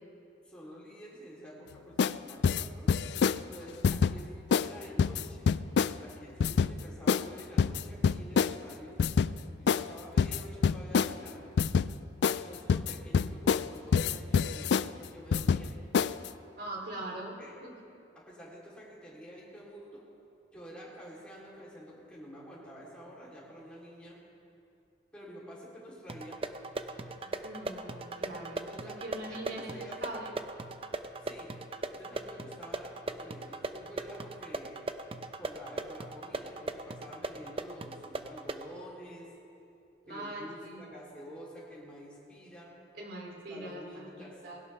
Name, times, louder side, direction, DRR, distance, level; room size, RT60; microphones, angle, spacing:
voice 1, 0.4-2.9 3.5-5.5 6.0-9.0 9.6-11.6 12.4-15.7 17.4-17.5 18.2-20.0 20.5-24.2 25.1-26.4 28.5-29.0 29.3-30.2 31.2-31.5 31.9-34.8 35.4-39.3 40.1-42.7 43.5-44.4, equal, 5° left, -7 dB, 3.5 m, -48 dB
sound 1, 2.0-2.2 2.4-3.4 3.8-4.1 4.5-4.7 5.0-5.9 6.4-6.7 7.1-7.3 7.6-8.5 9.0-9.3 9.7-9.9 10.2-11.1 11.6-11.9 12.2-12.4 12.7-13.7 13.9-14.9 15.3-15.7 15.9-16.3, left 6 dB, 70° left, 0.3 m, -26 dB
voice 2, 16.5-17.7 27.2-30.3 40.0-40.9 42.9-44.6, right 1 dB, 65° right, -1 dB, 3.3 m, -42 dB
sound 2, 26.1-38.7, right 2 dB, 30° right, 0.6 m, -39 dB
20.0 x 17.0 x 3.5 m, 2.6 s
head